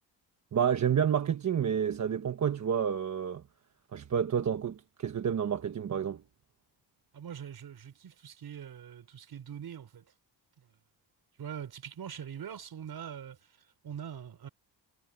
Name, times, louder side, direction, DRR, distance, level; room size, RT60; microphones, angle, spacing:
voice 1, 0.5-3.4 3.9-6.2, right 8 dB, 45° right, 1.1 m, -29 dB
voice 2, 7.1-10.1 10.6-10.8 11.4-14.5, right 8 dB, 60° right, 4.7 m, -43 dB
wide cardioid pair, 150°, 41 cm